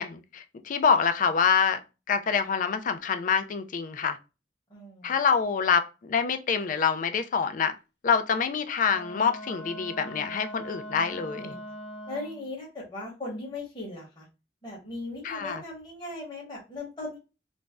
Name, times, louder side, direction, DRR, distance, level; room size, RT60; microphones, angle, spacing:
voice 1, 0.0-1.8 2.1-4.2 5.0-7.7 8.0-11.5 15.2-15.6, left 6 dB, 50° left, 0.4 m, -26 dB
voice 2, 4.7-5.1 11.3-11.6 12.1-14.3 14.6-17.2, left 2 dB, 25° left, 1.0 m, -38 dB
Wind instrument woodwind instrument, 8.9-12.5, equal, 85° left, 0.9 m, -41 dB
2.5 x 2.1 x 3.4 m
head